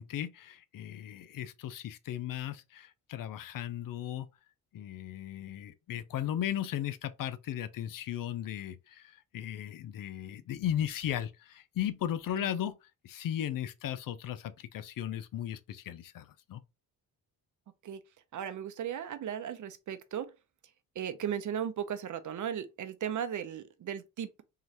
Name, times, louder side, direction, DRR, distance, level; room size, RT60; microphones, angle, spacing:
voice 1, 0.0-4.3 4.7-12.8 13.0-16.6, left 11 dB, 65° left, 0.6 m, -36 dB
voice 2, 18.3-20.3 21.0-24.4, right 9 dB, 55° right, 0.7 m, -36 dB
3.8 x 3.1 x 2.8 m
cardioid pair, 95°, 36 cm